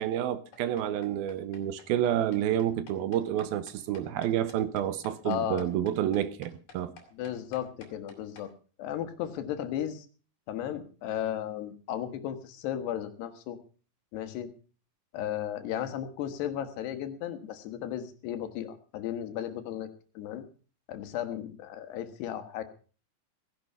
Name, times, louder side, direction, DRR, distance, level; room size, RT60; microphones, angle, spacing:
voice 1, 0.0-6.9, right 11 dB, 75° right, 2.5 m, -29 dB
sound 1, 0.5-8.5, left 5 dB, 60° left, 4.2 m, -52 dB
voice 2, 5.3-5.7 7.1-8.5 8.8-10.1 10.5-13.6 14.1-14.5 15.1-19.9 20.2-20.4 20.9-22.6, left 10 dB, 85° left, 3.5 m, -35 dB
17.0 x 11.0 x 5.6 m
omnidirectional pair, 4.7 m